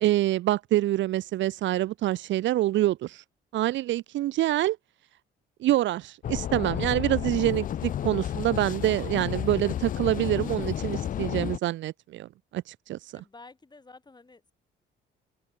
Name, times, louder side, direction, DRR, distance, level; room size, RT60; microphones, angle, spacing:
voice 1, 0.0-3.2 3.5-4.8 5.6-13.2, right 14 dB, 70° right, 0.5 m, -26 dB
sound 1, 6.2-11.6, left 10 dB, 45° left, 0.4 m, -31 dB
voice 2, 7.2-7.7 13.2-14.5, left 3 dB, 20° left, 2.5 m, -51 dB
open air
cardioid pair, 90°, 20 cm